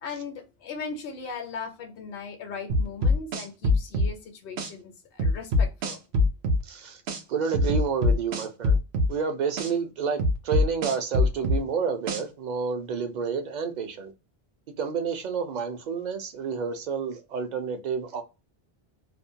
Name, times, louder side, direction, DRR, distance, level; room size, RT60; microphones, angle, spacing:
voice 1, 0.0-6.0, left 5 dB, 70° left, 0.8 m, -38 dB
sound 1, 2.7-4.1 4.6-4.7 5.2-6.6 7.1-7.2 7.5-9.1 9.6-9.7 10.2-11.6 12.1-12.2, left 2 dB, 90° right, 0.9 m, -23 dB
voice 2, 6.6-7.0 7.3-8.8 9.1-14.1 14.8-18.2, right 6 dB, 55° right, 0.6 m, -29 dB
2.5 x 2.1 x 2.6 m
omnidirectional pair, 1.0 m